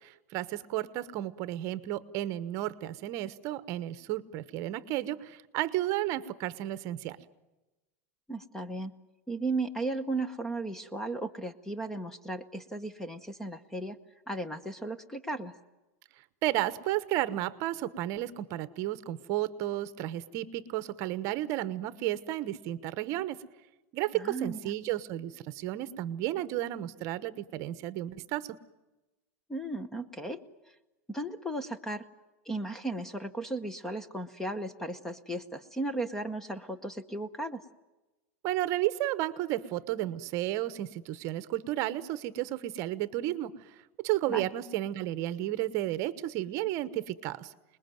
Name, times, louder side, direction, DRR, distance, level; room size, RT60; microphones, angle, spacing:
voice 1, 0.0-7.2 16.4-23.4 23.9-28.6 38.4-47.5, right 14 dB, 40° right, 15 dB, 1.1 m, -33 dB
voice 2, 8.3-8.9 9.3-14.0 14.3-15.5 24.1-24.7 29.5-30.4 31.1-32.1 32.4-37.6 44.3-44.5, right 2 dB, 5° left, 11 dB, 0.8 m, -35 dB
28.0 x 21.0 x 9.2 m, 1.1 s
supercardioid pair, 160°, 8 cm